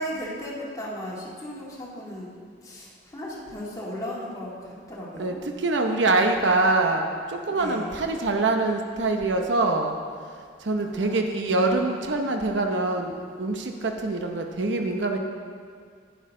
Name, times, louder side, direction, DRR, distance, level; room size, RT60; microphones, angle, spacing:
voice 1, 0.0-2.4 2.6-5.4 7.5-7.9 10.8-12.1, equal, 20° left, -6 dB, 2.2 m, -36 dB
voice 2, 5.2-10.0 10.6-15.2, right 2 dB, 80° right, 4 dB, 0.8 m, -24 dB
11.0 x 10.5 x 3.7 m, 2.1 s
head